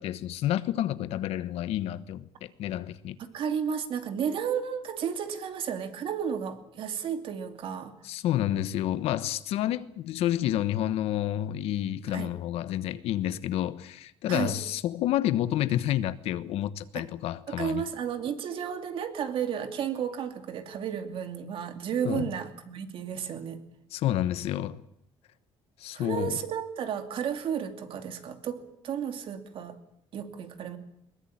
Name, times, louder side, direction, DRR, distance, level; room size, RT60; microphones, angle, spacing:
voice 1, 0.0-3.2 8.0-17.8 22.0-22.3 23.9-24.8 25.8-26.4, left 12 dB, 85° left, 1.1 m, -29 dB
voice 2, 3.2-7.9 12.1-12.3 14.3-14.6 16.9-17.0 17.5-23.6 25.9-29.8 30.1-30.8, right 8 dB, 60° right, 2.6 m, -33 dB
21.5 x 20.0 x 8.7 m
cardioid pair, 140°, 10 cm